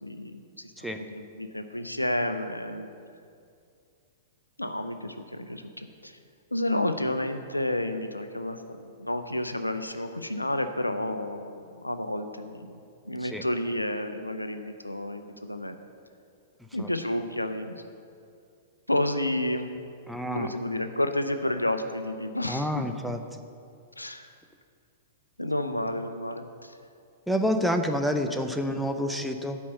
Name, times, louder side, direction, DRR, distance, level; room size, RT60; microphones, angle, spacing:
voice 1, 0.0-2.9 4.6-6.2 6.5-12.8 13.0-15.8 16.7-17.8 18.9-19.7 20.3-22.7 24.0-24.3 25.4-26.8, left 1 dB, 90° left, 9 dB, 0.6 m, -31 dB
voice 2, 20.1-20.5 22.5-23.4 27.3-29.6, equal, ahead, 6 dB, 0.6 m, -28 dB
8.5 x 5.4 x 7.9 m, 2.3 s
figure-of-eight pair, 105°, 0 cm